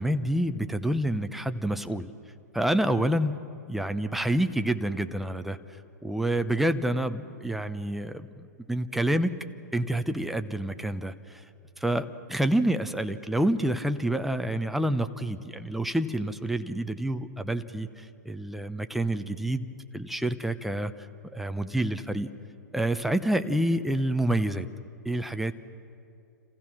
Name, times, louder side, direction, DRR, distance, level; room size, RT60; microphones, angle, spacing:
voice 1, 0.0-2.1 2.5-3.4 3.7-5.6 6.0-9.3 9.7-11.4 11.8-19.7 19.9-20.9 21.3-22.3 22.7-24.7 25.0-25.5, right 1 dB, ahead, 9 dB, 0.8 m, -28 dB
29.0 x 15.5 x 6.0 m, 2.5 s
hypercardioid pair, 115°, 9 cm